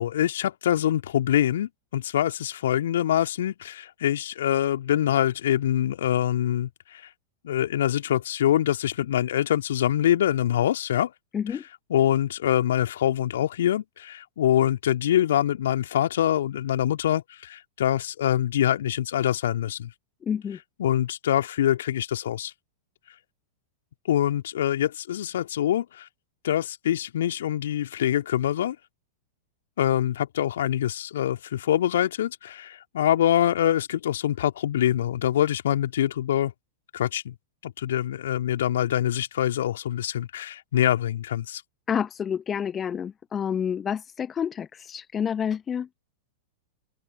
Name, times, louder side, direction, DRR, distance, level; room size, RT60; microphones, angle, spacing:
voice 1, 0.0-7.0 7.4-11.1 11.9-19.9 20.8-22.5 24.1-26.1 26.4-28.8 29.8-36.5 36.9-37.3 37.6-41.6, left 11 dB, 65° left, 2.6 m, -24 dB
voice 2, 11.3-11.6 20.2-20.6 41.9-45.9, left 8 dB, 25° left, 1.1 m, -29 dB
open air
figure-of-eight pair, 95°, 0 cm